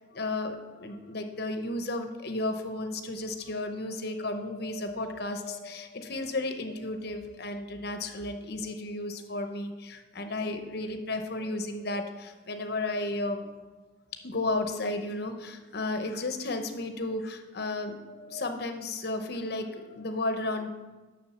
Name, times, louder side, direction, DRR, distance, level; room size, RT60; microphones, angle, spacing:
voice 1, 0.0-13.7 14.2-20.7, left 2 dB, 50° left, 7 dB, 0.8 m, -33 dB
7.1 x 6.3 x 7.0 m, 1.2 s
head